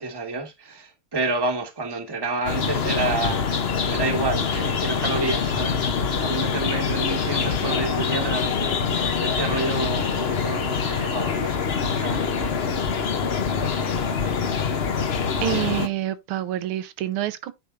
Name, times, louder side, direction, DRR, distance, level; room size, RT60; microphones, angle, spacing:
voice 1, 0.0-3.5 3.8-12.7, right 3 dB, 15° right, 1.1 m, -29 dB
sound 1, 2.4-15.9, left 6 dB, 60° left, 0.6 m, -25 dB
voice 2, 15.4-17.5, right 13 dB, 75° right, 1.6 m, -27 dB
9.0 x 3.6 x 3.9 m
omnidirectional pair, 2.4 m